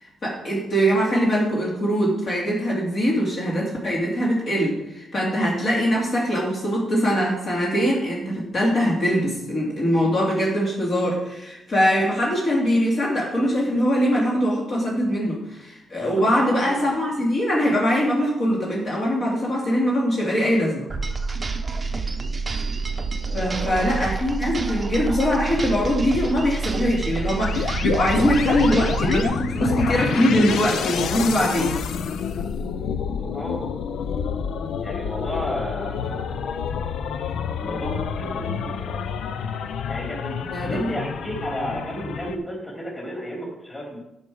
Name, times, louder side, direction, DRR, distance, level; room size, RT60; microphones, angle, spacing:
voice 1, 0.2-20.8 23.3-31.8 40.5-40.9, equal, 45° left, -4 dB, 2.2 m, -22 dB
voice 2, 15.9-16.8 23.2-24.0 33.2-33.6 34.8-36.5 37.5-39.0 39.9-40.3 40.6-44.0, equal, 20° left, -3 dB, 4.0 m, -33 dB
sound 1, 20.9-29.2, right 4 dB, 25° right, 0.7 m, -28 dB
sound 2, 27.4-42.4, left 7 dB, 80° left, 0.5 m, -28 dB
11.5 x 5.5 x 4.7 m, 0.88 s
wide cardioid pair, 145°, 0 cm